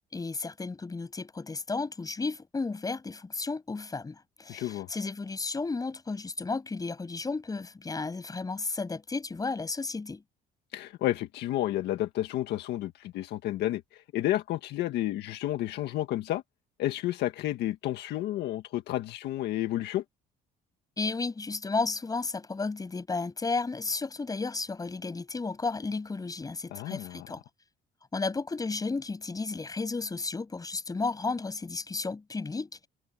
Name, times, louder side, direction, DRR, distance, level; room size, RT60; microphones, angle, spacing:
voice 1, 0.1-10.2 21.0-27.4 28.1-32.9, left 3 dB, 20° left, 7.4 m, -33 dB
voice 2, 4.5-4.9 10.7-16.4 16.8-20.0 26.7-27.3, left 14 dB, 80° left, 1.8 m, -31 dB
cardioid pair, 110°, 17 cm